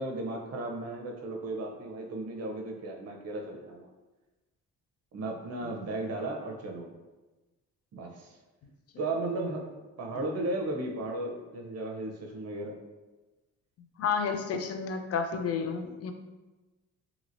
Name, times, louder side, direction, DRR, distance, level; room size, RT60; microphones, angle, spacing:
voice 1, 0.0-3.9 5.1-6.9 7.9-8.4 9.0-12.7, right 2 dB, 55° right, 1 dB, 0.7 m, -35 dB
voice 2, 14.0-16.1, left 6 dB, 55° left, 6 dB, 0.4 m, -31 dB
2.9 x 2.8 x 2.6 m, 1.1 s
cardioid pair, 90°, 30 cm